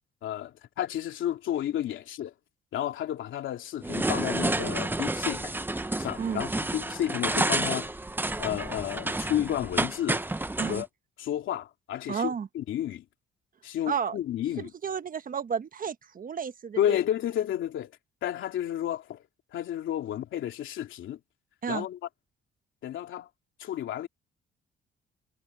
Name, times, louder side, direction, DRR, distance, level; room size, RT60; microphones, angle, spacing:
voice 1, 0.2-2.3 2.7-5.5 6.0-7.9 8.4-10.2 10.6-10.9 11.2-13.0 13.6-14.7 16.8-19.2 19.5-21.2 21.7-22.0 22.8-23.3 23.6-24.1, left 11 dB, 75° left, 3.0 m, -31 dB
sound 1, 3.8-10.8, right 2 dB, 10° right, 0.9 m, -30 dB
voice 2, 12.1-12.5 13.9-14.2 14.6-17.0 21.6-21.9, right 7 dB, 45° right, 1.2 m, -32 dB
cardioid pair, 90°, 20 cm